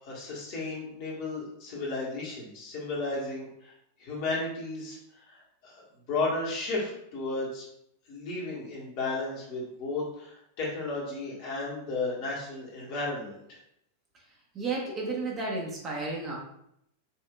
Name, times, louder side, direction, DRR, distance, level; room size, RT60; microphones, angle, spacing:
voice 1, 0.0-3.7 4.0-5.8 6.1-7.7 8.1-13.6, left 3 dB, 45° left, -5 dB, 1.5 m, -34 dB
voice 2, 14.5-16.4, right 3 dB, 25° right, -3 dB, 1.1 m, -32 dB
5.5 x 2.7 x 2.3 m, 0.76 s
figure-of-eight pair, 90°, 0 cm